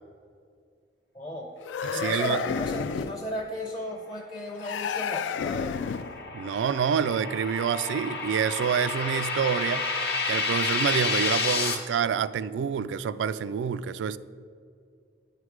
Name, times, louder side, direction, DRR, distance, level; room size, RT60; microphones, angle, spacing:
voice 1, 1.1-1.5 1.9-5.8, equal, 20° left, -1 dB, 0.5 m, -35 dB
sound 1, 1.6-3.2 4.6-6.2, left 6 dB, 85° left, 0.3 m, -31 dB
voice 2, 1.8-2.4 6.3-9.9 10.3-14.2, right 7 dB, 85° right, 16 dB, 0.3 m, -27 dB
sound 2, 4.9-11.7, left 4 dB, 60° left, 0.9 m, -30 dB
9.3 x 4.9 x 4.7 m, 2.3 s
head